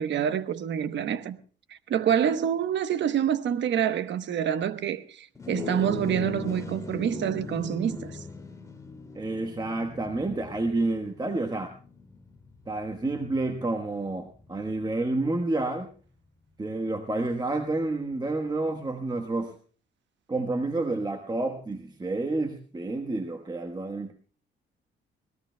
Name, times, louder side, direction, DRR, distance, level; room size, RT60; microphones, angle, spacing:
voice 1, 0.0-1.4 1.9-8.2, right 9 dB, 65° right, 1.0 m, -27 dB
sound 1, 5.3-14.9, left 3 dB, 15° left, 2.5 m, -40 dB
voice 2, 9.1-11.7 12.7-15.9 16.6-19.6 20.3-24.1, right 2 dB, 20° right, 1.3 m, -29 dB
25.0 x 17.5 x 2.2 m
cardioid pair, 90°, 20 cm